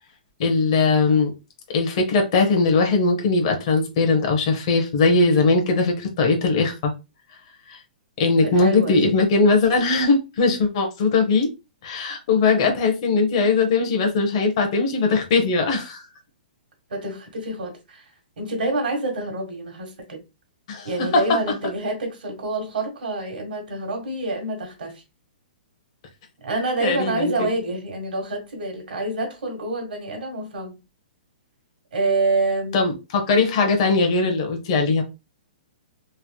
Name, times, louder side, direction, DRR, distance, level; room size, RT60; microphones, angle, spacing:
voice 1, 0.4-1.3 1.7-6.9 7.7-7.8 8.2-11.5 11.8-16.0 20.7-20.9 26.8-27.5 32.7-35.0, left 3 dB, 35° left, 0.8 m, -20 dB
voice 2, 8.4-9.1 12.5-12.7 16.9-18.0 18.4-20.2 20.8-25.0 26.4-30.8 31.9-32.9, right 2 dB, 80° right, 1.5 m, -27 dB
3.1 x 2.9 x 2.2 m
hypercardioid pair, 175°, 5 cm